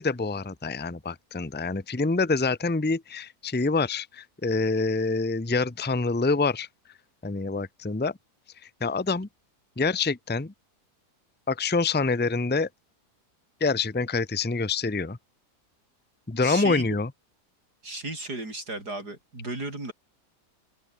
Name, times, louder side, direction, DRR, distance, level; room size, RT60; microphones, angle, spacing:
voice 1, 0.0-6.7 7.2-8.1 8.8-9.3 9.8-10.5 11.5-12.7 13.6-15.2 16.3-17.1, left 3 dB, 10° left, 0.8 m, -26 dB
voice 2, 16.4-16.9 17.8-19.9, right 2 dB, 80° right, 7.8 m, -34 dB
open air
omnidirectional pair, 1.7 m